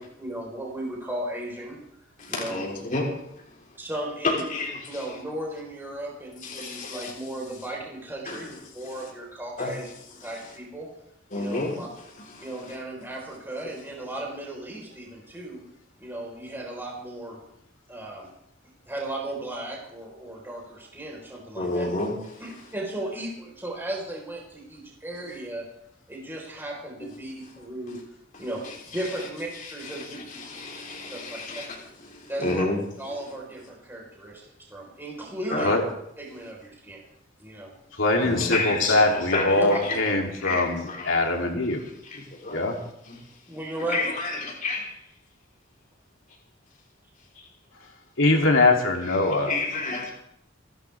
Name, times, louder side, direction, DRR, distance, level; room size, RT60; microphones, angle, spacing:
voice 1, 0.0-1.8 2.3-2.6 3.8-4.4 4.9-9.8 10.2-10.9 11.3-11.9 12.4-15.6 16.0-17.4 17.9-18.3 18.9-21.9 22.4-25.6 26.1-28.0 28.4-28.6 28.9-30.2 31.1-31.6 32.3-32.7 33.0-34.4 34.7-35.8 36.2-37.0 37.4-37.7 39.5-39.8 43.5-44.1, right 1 dB, 10° right, -2 dB, 4.3 m, -35 dB
voice 2, 2.2-3.1 4.2-5.0 6.4-7.1 8.3-9.1 9.6-9.7 10.2-10.3 11.3-11.8 12.3-12.7 21.5-22.4 27.0-27.1 27.9-28.0 28.3-29.0 29.5-31.8 32.1-32.8 35.5-35.7 38.2-41.2 42.0-42.6 43.1-43.2 43.9-44.9 47.4-47.5 49.1-50.1, left 3 dB, 45° left, -3 dB, 3.7 m, -31 dB
voice 3, 38.0-41.8 42.5-42.8 48.2-49.5, left 2 dB, 85° left, 1 dB, 3.0 m, -22 dB
29.0 x 12.0 x 3.5 m, 0.77 s
head